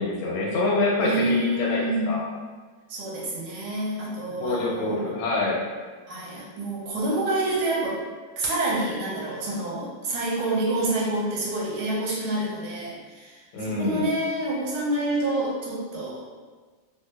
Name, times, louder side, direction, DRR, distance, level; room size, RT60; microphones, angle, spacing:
voice 1, 0.0-2.2 4.4-5.6 13.5-14.1, left 2 dB, 85° left, -3 dB, 1.6 m, -26 dB
voice 2, 1.0-2.3 2.9-5.1 6.1-8.0 8.4-16.2, right 1 dB, 90° right, -4 dB, 1.6 m, -27 dB
3.6 x 2.6 x 2.4 m, 1.4 s
omnidirectional pair, 2.2 m